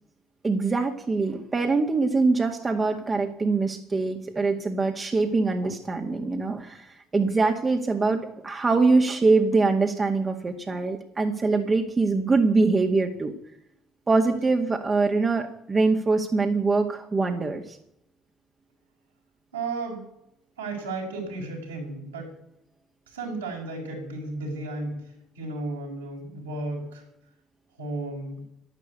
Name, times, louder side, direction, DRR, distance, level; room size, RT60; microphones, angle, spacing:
voice 1, 0.4-13.3 14.1-17.8, right 3 dB, 30° right, 3 dB, 2.0 m, -23 dB
voice 2, 19.5-20.0 20.6-22.3 23.1-27.0 27.8-28.4, right 2 dB, 80° right, -2 dB, 6.2 m, -34 dB
12.5 x 11.5 x 8.3 m, 0.82 s
figure-of-eight pair, 45°, 0 cm